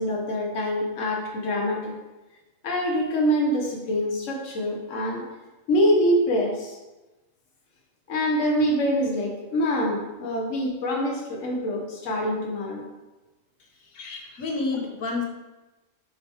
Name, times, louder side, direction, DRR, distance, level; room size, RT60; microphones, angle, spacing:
voice 1, 0.0-1.9 2.6-5.3 5.7-6.8 8.1-12.8 13.9-14.4, equal, 70° left, 0 dB, 1.4 m, -25 dB
voice 2, 14.4-15.3, left 3 dB, 85° left, 0 dB, 1.6 m, -29 dB
6.6 x 5.6 x 4.5 m, 1.1 s
omnidirectional pair, 1.4 m